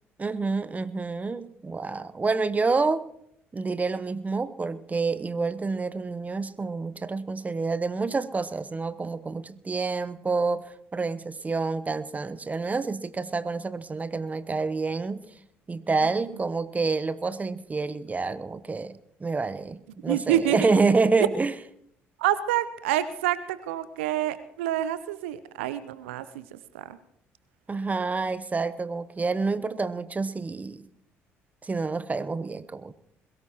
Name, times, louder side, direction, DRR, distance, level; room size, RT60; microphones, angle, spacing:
voice 1, 0.2-3.0 3.5-10.6 10.9-15.2 15.7-21.5 27.7-30.9 31.6-32.9, right 4 dB, 20° right, 15 dB, 0.8 m, -28 dB
voice 2, 20.0-20.7 22.2-27.0, right 12 dB, 75° right, 15 dB, 0.6 m, -28 dB
22.0 x 17.0 x 3.0 m, 0.75 s
figure-of-eight pair, 50°, 7 cm